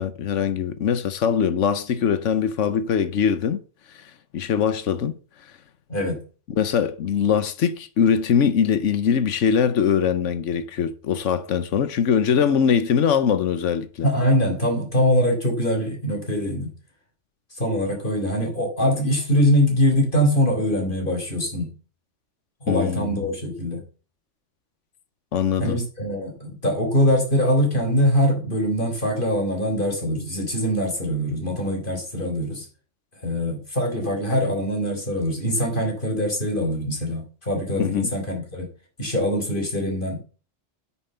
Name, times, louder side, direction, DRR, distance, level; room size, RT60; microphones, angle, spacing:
voice 1, 0.0-3.6 3.9-5.1 6.5-14.1 22.7-23.3 25.3-25.8 37.8-38.1, left 7 dB, 85° left, 1.2 m, -22 dB
voice 2, 5.9-6.2 14.0-16.7 17.5-21.7 22.6-23.8 25.6-32.7 33.2-38.7 39.0-40.2, equal, 45° left, 4.0 m, -23 dB
9.0 x 7.2 x 6.8 m
omnidirectional pair, 1.2 m